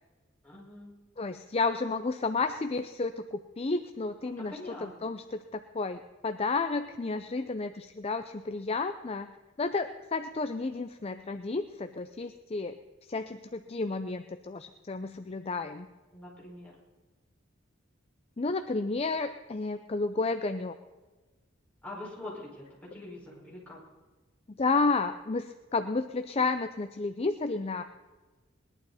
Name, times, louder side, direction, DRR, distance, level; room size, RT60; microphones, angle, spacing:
voice 1, 0.4-0.9 4.2-4.9 15.3-15.4 16.1-16.7 21.8-23.8, left 2 dB, 10° left, -7 dB, 5.3 m, -44 dB
voice 2, 1.2-9.3 9.6-12.8 13.1-15.9 18.4-20.8 24.5-27.8, left 3 dB, 30° left, 9 dB, 0.5 m, -31 dB
20.5 x 11.5 x 4.2 m, 1.2 s
head